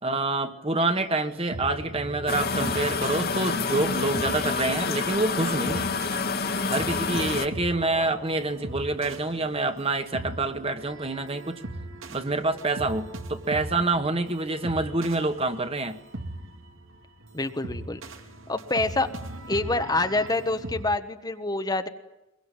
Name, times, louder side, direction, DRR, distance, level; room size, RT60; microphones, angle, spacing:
voice 1, 0.0-5.9 6.7-11.6 12.1-16.0, right 2 dB, 30° right, 8 dB, 1.7 m, -27 dB
sound 1, 1.0-20.8, right 1 dB, 70° right, 2.3 m, -39 dB
sound 2, 2.3-7.5, left 4 dB, 50° left, 1.9 m, -28 dB
sound 3, 6.8-10.4, right 1 dB, 90° right, 3.3 m, -47 dB
voice 2, 17.3-18.0 18.5-19.1 19.5-21.9, left 2 dB, 20° left, 8 dB, 1.2 m, -26 dB
23.0 x 22.5 x 9.7 m, 0.93 s
head